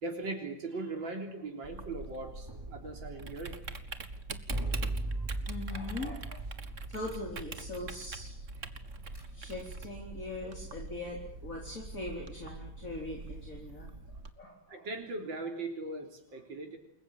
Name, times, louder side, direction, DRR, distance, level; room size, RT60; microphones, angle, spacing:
voice 1, 0.0-3.6 5.1-5.3 14.7-16.8, right 3 dB, 70° right, 3 dB, 4.3 m, -39 dB
Typing, 1.6-14.3, right 3 dB, 40° right, 1.9 m, -44 dB
sound 1, 2.4-3.8 4.5-7.8 8.9-9.2, right 2 dB, 10° right, 5.5 m, -37 dB
voice 2, 5.5-6.5 6.9-8.7 9.3-13.9 14.4-14.8, left 2 dB, 40° left, -1 dB, 4.6 m, -41 dB
29.0 x 22.0 x 9.1 m, 0.72 s
omnidirectional pair, 2.1 m